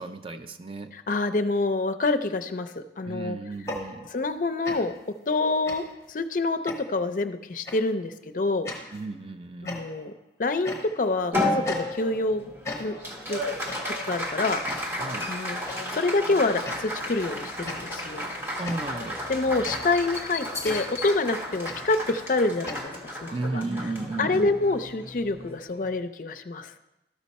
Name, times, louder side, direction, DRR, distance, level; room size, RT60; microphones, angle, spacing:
voice 1, 0.0-0.9 3.0-4.1 8.9-9.8 15.0-15.3 18.6-19.2 23.3-24.6, right 2 dB, 30° right, 8 dB, 0.4 m, -34 dB
voice 2, 1.1-3.4 4.1-4.9 5.3-8.7 9.6-10.1 10.4-12.5 12.8-12.9 13.3-13.4 13.9-14.6 15.3-15.6 15.9-18.2 19.3-23.6 24.2-26.7, left 3 dB, 50° left, 9 dB, 0.5 m, -27 dB
sound 1, 3.5-4.4 4.6-5.1 5.7-6.1 6.7-7.1 7.7-8.0 8.7-9.1 9.7-10.2 10.6-11.2 11.6-12.3 12.6-13.2 13.7-14.1 14.7-15.1 15.7-16.0 16.6-17.1 17.7-22.8, left 2 dB, 15° left, 0.9 m, -38 dB
Applause, 11.3-26.0, left 1 dB, 15° right, 1.0 m, -33 dB
12.5 x 5.5 x 4.1 m, 0.94 s
head